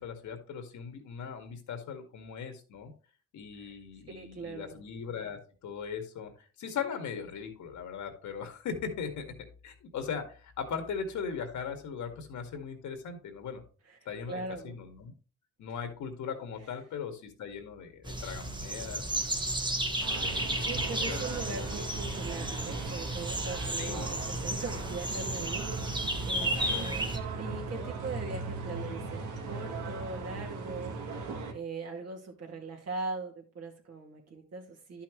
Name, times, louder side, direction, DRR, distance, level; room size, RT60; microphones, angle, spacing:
voice 1, 0.0-2.9 3.3-9.3 9.6-13.6 14.1-15.1 15.6-19.4 20.1-21.6 23.8-24.3, left 6 dB, 75° left, 6 dB, 1.9 m, -39 dB
voice 2, 4.1-4.8 13.9-14.0 14.3-14.7 20.6-27.1 27.4-31.0 31.5-35.0, right 3 dB, 55° right, 1 dB, 2.3 m, -40 dB
sound 1, 18.0-27.2, right 1 dB, 15° right, 1.1 m, -33 dB
sound 2, 20.0-31.5, right 4 dB, 80° right, 1.6 m, -38 dB
11.0 x 5.8 x 3.1 m, 0.37 s
cardioid pair, 90°, 30 cm